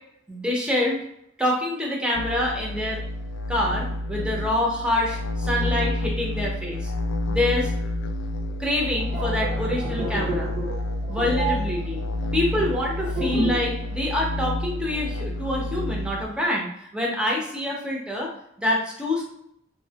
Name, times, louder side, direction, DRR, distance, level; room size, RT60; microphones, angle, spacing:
voice 1, 0.3-1.0 1.4-3.0 3.5-6.9 7.3-7.7 8.6-10.5 11.1-12.0 12.3-18.3 18.6-19.2, left 1 dB, 5° right, -3 dB, 0.6 m, -26 dB
sound 1, 2.1-16.2, left 1 dB, 70° left, 0.3 m, -29 dB
sound 2, 9.0-13.8 14.0-14.3, right 1 dB, 60° right, 0.9 m, -30 dB
2.9 x 2.1 x 2.8 m, 0.74 s
head